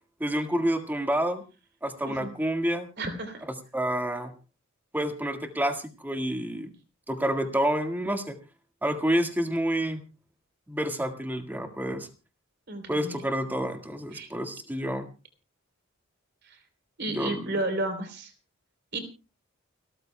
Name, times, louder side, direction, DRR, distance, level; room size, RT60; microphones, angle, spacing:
voice 1, 0.2-1.4 1.8-2.9 3.7-4.3 4.9-6.7 7.1-8.4 8.8-10.0 10.7-12.1 12.9-15.1 17.1-17.6, right 1 dB, 10° right, 5 dB, 1.7 m, -28 dB
voice 2, 3.0-3.4 12.7-13.2 14.1-14.3 16.4-16.6 17.0-18.3 18.9-19.0, right 2 dB, 55° right, 7 dB, 3.5 m, -32 dB
29.5 x 13.5 x 2.2 m, 0.33 s
head